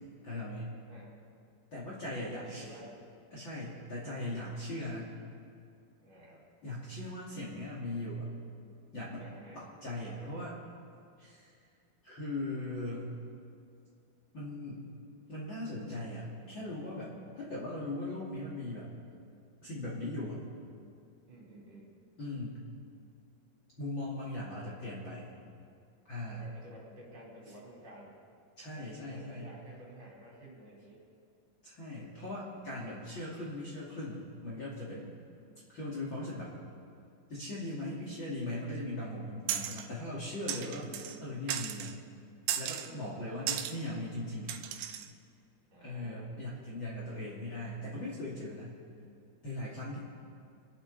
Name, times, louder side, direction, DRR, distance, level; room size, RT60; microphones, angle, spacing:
voice 1, 0.2-0.7 1.7-2.7 3.3-5.1 6.6-8.3 8.9-9.2 9.5-10.6 11.2-11.6 12.0-13.1 14.3-14.8 15.3-18.9 19.6-20.4 22.2-22.6 23.8-25.3 26.0-26.4 28.6-29.5 31.6-35.1 35.7-36.5 37.3-40.9 41.2-41.9 42.6-44.6 45.8-48.8 49.4-50.0, left 1 dB, 35° left, -6 dB, 2.7 m, -39 dB
voice 2, 2.1-3.0 6.0-6.4 9.2-9.6 10.1-10.4 17.2-17.4 21.3-21.9 26.3-28.2 28.7-31.0 40.7-41.3 42.8-43.2 45.7-46.2, right 1 dB, 35° right, -6 dB, 4.5 m, -52 dB
sound 1, 39.5-39.9 40.5-41.2 41.5-41.9 42.5-42.9 43.5-43.8 44.5-45.1, right 10 dB, 75° right, 1.9 m, -35 dB
27.5 x 11.5 x 4.1 m, 2.3 s
omnidirectional pair, 4.2 m